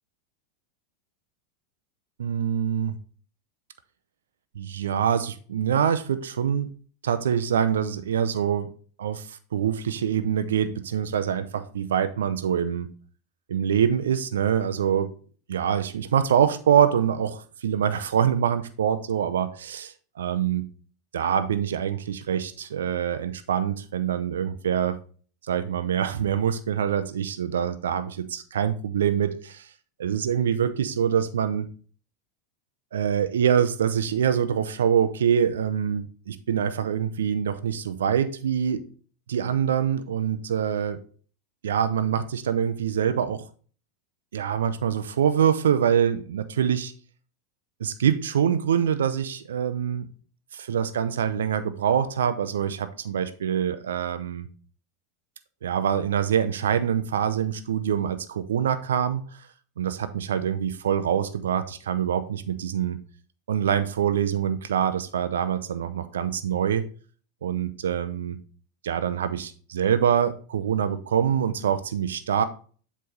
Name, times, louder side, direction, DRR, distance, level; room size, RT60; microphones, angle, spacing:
voice 1, 2.2-3.0 4.6-6.7 7.0-8.7 9.0-12.9 13.5-15.1 15.5-20.7 21.1-25.0 25.5-29.7 30.0-31.7 32.9-38.8 39.3-41.0 41.6-43.4 44.3-46.9 47.8-50.1 50.5-54.5 55.6-59.2 59.8-63.0 63.5-66.9 67.4-68.4 68.8-72.4, right 8 dB, 75° right, 11 dB, 0.6 m, -25 dB
7.8 x 3.4 x 5.3 m, 0.41 s
hypercardioid pair, 90°, 0 cm